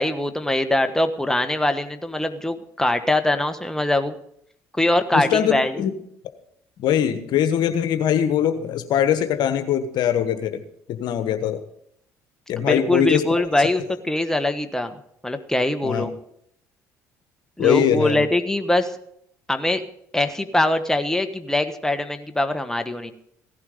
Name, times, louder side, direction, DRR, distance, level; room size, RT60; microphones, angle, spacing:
voice 1, 0.0-4.1 4.8-5.7 12.6-14.9 15.2-16.1 17.6-18.9 19.5-19.8 20.1-23.1, left 1 dB, 5° left, 8 dB, 1.4 m, -22 dB
voice 2, 5.1-5.9 6.8-10.6 10.9-11.6 12.5-13.4 15.8-16.1 17.6-18.2, left 9 dB, 65° left, 9 dB, 1.3 m, -22 dB
16.0 x 11.0 x 5.1 m, 0.70 s
hypercardioid pair, 65°, 8 cm